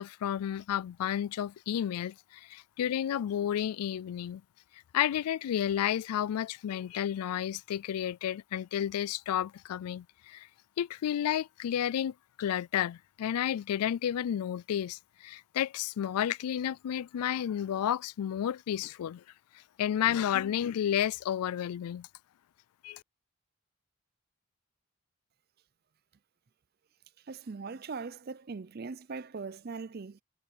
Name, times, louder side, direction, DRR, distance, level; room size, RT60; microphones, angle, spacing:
voice 1, 0.0-4.4 4.9-10.5 10.8-19.2 19.8-22.1 22.8-23.0, left 10 dB, 90° left, 0.3 m, -31 dB
voice 2, 27.3-30.2, right 4 dB, 45° right, 0.5 m, -40 dB
head